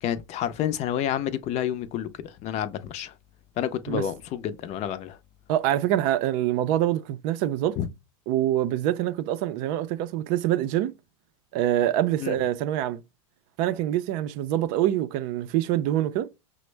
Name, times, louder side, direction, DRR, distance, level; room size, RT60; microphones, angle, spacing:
voice 1, 0.0-2.1 2.4-3.1 3.6-5.2 7.8-7.9 12.2-12.3, left 10 dB, 40° left, 0.6 m, -29 dB
voice 2, 5.5-7.8 8.3-10.9 11.5-13.0 13.6-16.3, right 12 dB, 50° right, 0.5 m, -25 dB
5.9 x 2.1 x 3.2 m
hypercardioid pair, 110°, 18 cm